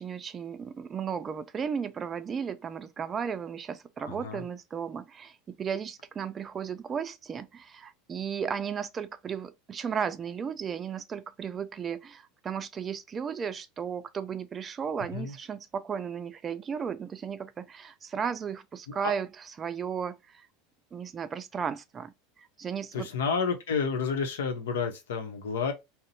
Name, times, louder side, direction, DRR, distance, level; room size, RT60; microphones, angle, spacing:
voice 1, 0.0-20.5 20.9-23.1, right 7 dB, 30° right, 0.4 m, -35 dB
voice 2, 4.0-4.4 15.1-15.3 19.0-19.1 22.9-25.7, left 5 dB, 85° left, 0.8 m, -30 dB
2.7 x 2.1 x 3.9 m
hypercardioid pair, 105°, 0 cm